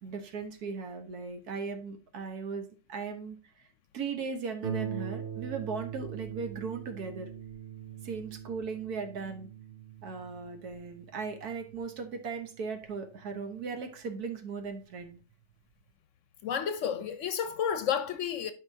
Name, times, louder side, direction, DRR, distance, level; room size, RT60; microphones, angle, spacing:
voice 1, 0.0-3.4 3.9-7.3 8.0-9.5 10.0-15.2, right 5 dB, 85° right, 1.6 m, -37 dB
Harp, 4.6-13.8 14.6-14.7 15.2-15.3, right 8 dB, 55° right, 1.0 m, -42 dB
voice 2, 16.4-18.5, left 8 dB, 65° left, 0.9 m, -31 dB
11.5 x 4.9 x 2.7 m
omnidirectional pair, 1.6 m